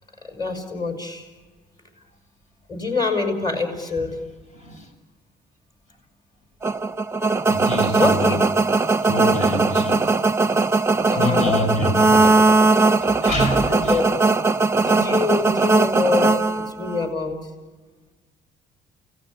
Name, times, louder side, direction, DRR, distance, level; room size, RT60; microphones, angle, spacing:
voice 1, 0.3-1.3 2.7-4.2 8.0-8.4 11.1-11.7 13.7-14.0 14.7-17.4, left 3 dB, 25° left, 5 dB, 5.5 m, -25 dB
voice 2, 4.5-4.9 7.5-8.4 8.9-10.1 11.1-12.4 12.7-14.0, left 1 dB, 50° left, 5 dB, 7.0 m, -26 dB
sound 1, 6.6-17.1, right 3 dB, 15° right, 0.8 m, -19 dB
29.5 x 18.5 x 6.9 m, 1.3 s
cardioid pair, 110°, 17 cm